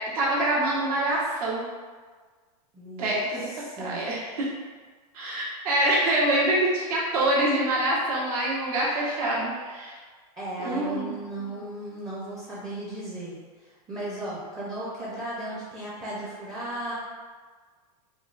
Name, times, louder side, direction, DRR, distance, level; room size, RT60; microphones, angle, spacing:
voice 1, 0.1-1.7 3.0-3.5 3.8-4.5 5.1-9.9 10.6-11.2, right 1 dB, 70° right, -6 dB, 1.1 m, -25 dB
voice 2, 2.7-3.3 3.6-4.0 10.4-16.9, right 1 dB, 20° right, -8 dB, 0.6 m, -36 dB
3.6 x 2.2 x 2.5 m, 1.5 s
supercardioid pair, 135°, 20 cm